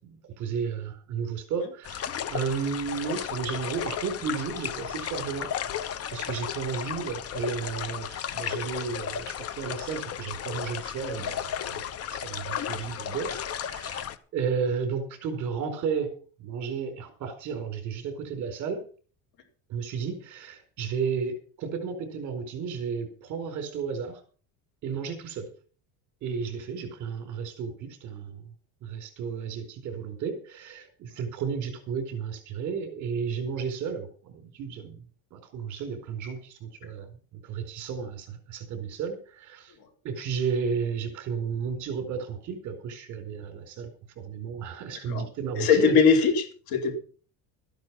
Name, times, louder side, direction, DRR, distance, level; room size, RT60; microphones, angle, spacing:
voice 1, 0.0-5.5 5.8-11.8 12.1-16.1 16.4-18.8 19.7-24.2 24.8-25.5 26.2-28.5 28.8-39.8 40.0-43.9 44.2-45.9, right 6 dB, 45° right, 7 dB, 4.4 m, -33 dB
sound 1, 1.8-14.2, left 9 dB, 35° left, 1.0 m, -34 dB
voice 2, 45.6-46.9, left 5 dB, 60° left, 4 dB, 4.5 m, -21 dB
14.0 x 10.5 x 6.0 m, 0.41 s
cardioid pair, 145°, 40 cm